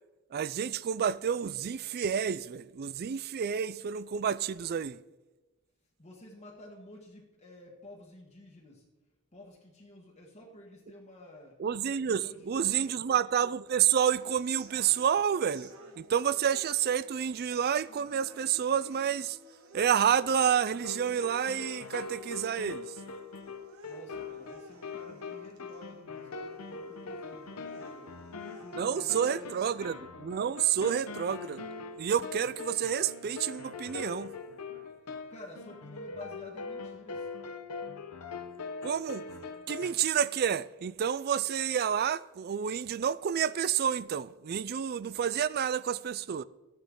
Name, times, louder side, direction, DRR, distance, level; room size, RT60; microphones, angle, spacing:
voice 1, 0.3-5.0 11.6-15.7 16.0-19.4 19.7-23.0 28.8-31.7 32.0-34.3 38.8-39.3 39.7-46.4, right 8 dB, 45° right, 0.4 m, -29 dB
voice 2, 6.0-8.9 9.3-11.6 12.1-13.0 23.9-28.1 28.5-29.7 35.3-37.3, left 1 dB, 30° left, 1.5 m, -51 dB
sound 1, 13.7-29.7, right 2 dB, 65° right, 1.4 m, -55 dB
sound 2, 20.7-39.9, left 4 dB, 85° left, 1.0 m, -42 dB
14.0 x 10.5 x 3.8 m
head